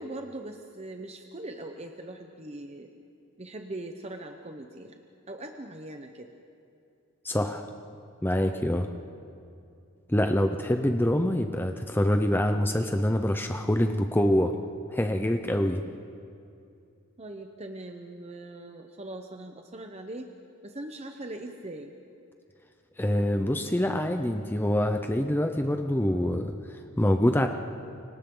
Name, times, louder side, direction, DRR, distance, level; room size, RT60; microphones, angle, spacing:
voice 1, 0.0-2.9 3.4-5.0 5.3-6.3 17.2-20.3 20.6-21.9, right 1 dB, 30° right, 4 dB, 0.9 m, -41 dB
voice 2, 7.2-7.6 8.2-8.9 10.1-14.5 14.9-15.8 23.0-27.5, left 1 dB, 10° left, 6 dB, 0.7 m, -25 dB
29.0 x 25.0 x 3.9 m, 2.6 s
head